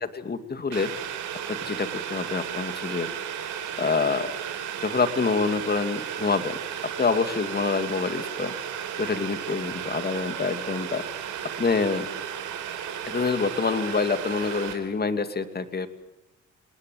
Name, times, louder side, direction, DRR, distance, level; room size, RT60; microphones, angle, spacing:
voice 1, 0.0-0.9 1.5-3.1 3.8-4.3 4.8-8.5 9.0-11.0 11.4-12.1 13.1-15.9, left 4 dB, 30° left, 9 dB, 2.5 m, -27 dB
Boiling, 0.7-14.7, right 9 dB, 80° right, 4.3 m, -34 dB
28.0 x 19.5 x 9.4 m, 0.98 s
cardioid pair, 90°, 30 cm